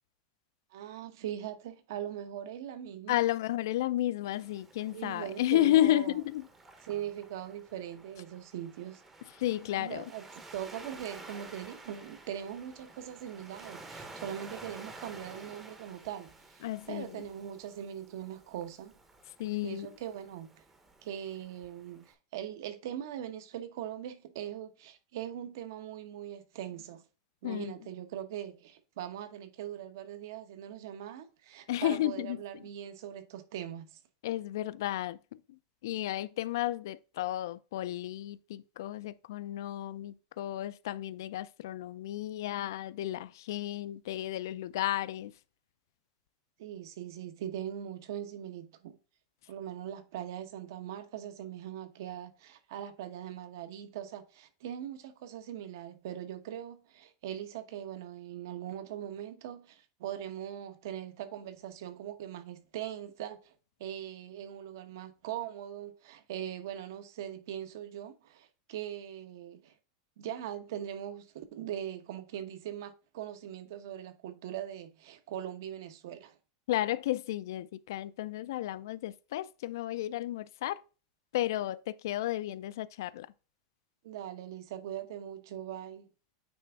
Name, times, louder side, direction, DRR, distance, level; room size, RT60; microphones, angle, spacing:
voice 1, 0.7-3.2 4.9-6.2 6.8-9.0 9.8-10.2 10.5-18.9 19.6-20.6 21.0-27.0 27.4-34.0 46.6-49.0 49.5-63.5 63.8-69.7 70.2-76.4 84.0-86.1, right 10 dB, 60° right, 1.0 m, -41 dB
voice 2, 3.1-6.5 9.4-10.1 16.6-17.2 19.4-19.9 27.4-27.7 31.7-32.4 34.2-45.3 76.7-80.8 81.3-83.3, left 14 dB, 65° left, 0.4 m, -32 dB
Waves surf, 4.3-22.1, right 2 dB, 10° right, 0.7 m, -52 dB
9.1 x 3.4 x 3.4 m
supercardioid pair, 180°, 2 cm